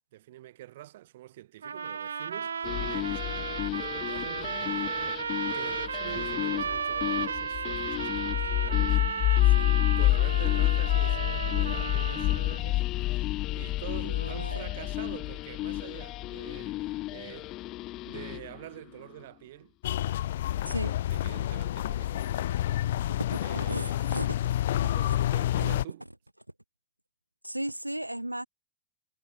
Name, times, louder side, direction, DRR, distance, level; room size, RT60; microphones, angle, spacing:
voice 1, 0.1-5.2 5.5-9.4 10.0-17.6 18.1-19.7 20.6-22.9 23.4-24.0 24.9-26.0, right 15 dB, 55° right, 5.9 m, -46 dB
sound 1, 1.6-12.6, right 6 dB, 70° right, 0.9 m, -34 dB
sound 2, 2.6-18.6, left 17 dB, 35° left, 0.6 m, -29 dB
voice 2, 14.0-14.7 20.7-20.9 23.1-24.4 24.8-25.2 27.4-28.5, right 1 dB, 85° right, 1.2 m, -36 dB
sound 3, 19.8-25.8, left 13 dB, 60° left, 1.0 m, -29 dB
figure-of-eight pair, 90°, 0 cm